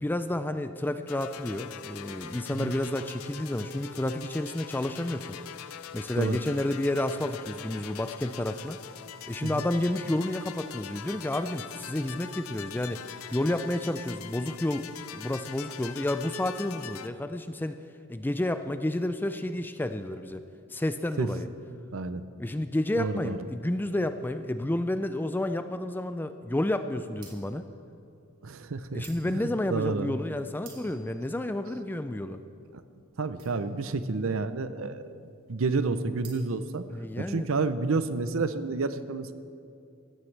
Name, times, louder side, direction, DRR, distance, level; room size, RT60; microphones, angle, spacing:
voice 1, 0.0-5.6 5.9-8.8 9.3-13.0 13.3-14.9 15.1-17.8 18.1-20.4 20.7-21.5 22.4-27.7 28.9-32.4 36.9-37.5, left 1 dB, 10° left, 10 dB, 0.3 m, -30 dB
sound 1, 1.1-17.1, left 9 dB, 75° left, 0.5 m, -43 dB
voice 2, 23.0-23.4 28.4-30.2 33.2-35.2 35.5-36.8 37.2-39.3, right 3 dB, 65° right, 12 dB, 0.6 m, -30 dB
sound 2, 27.1-37.5, right 7 dB, 90° right, 2.2 m, -55 dB
15.5 x 15.0 x 3.3 m, 2.5 s
head